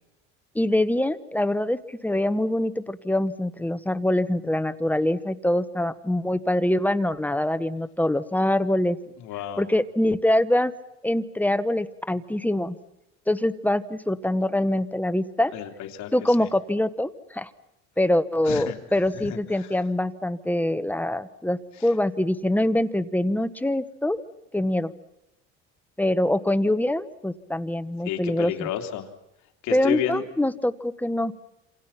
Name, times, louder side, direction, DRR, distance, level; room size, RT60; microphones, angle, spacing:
voice 1, 0.5-9.0 9.6-10.7 11.0-12.8 13.3-15.5 16.1-17.5 18.0-24.2 24.5-24.9 26.0-28.7 29.7-31.3, left 1 dB, 5° left, 12 dB, 1.1 m, -24 dB
voice 2, 9.2-9.6 15.5-16.1 16.4-16.5 18.4-18.7 19.3-19.7 21.8-21.9 28.0-29.1 29.6-30.2, left 11 dB, 70° left, 5 dB, 3.2 m, -31 dB
27.0 x 27.0 x 5.9 m, 0.87 s
cardioid pair, 120°, 29 cm